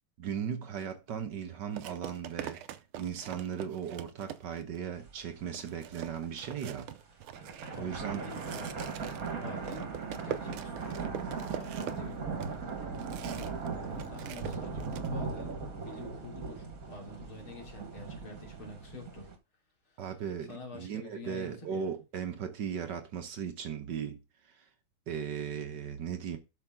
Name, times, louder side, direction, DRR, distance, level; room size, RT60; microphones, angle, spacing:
voice 1, 0.2-2.6 3.0-6.9 7.8-8.2 20.0-24.2 25.1-26.4, right 8 dB, 60° right, 1.5 m, -37 dB
sound 1, 0.8-0.9 1.8-4.8 5.2-5.3 5.5-13.7 13.9-15.1, right 10 dB, 85° right, 1.6 m, -43 dB
sound 2, 5.1-5.2 5.5-5.6 6.1-6.5 7.2-19.3, right 4 dB, 45° right, 1.8 m, -38 dB
voice 2, 7.7-8.8 9.3-12.3 13.4-19.3 20.5-21.9, left 2 dB, 75° left, 3.8 m, -47 dB
12.0 x 5.8 x 3.7 m
omnidirectional pair, 2.3 m